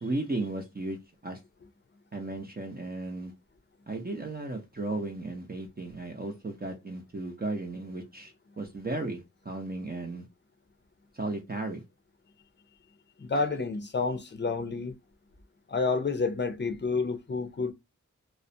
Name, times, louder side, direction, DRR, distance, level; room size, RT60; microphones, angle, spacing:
voice 1, 0.0-1.0 1.2-1.4 2.1-3.3 3.9-10.2 11.2-11.8 13.3-13.4, right 2 dB, 30° right, 0.6 m, -35 dB
voice 2, 13.2-14.9 15.7-17.7, left 4 dB, 35° left, 0.6 m, -29 dB
2.4 x 2.1 x 2.6 m
wide cardioid pair, 55°, 31 cm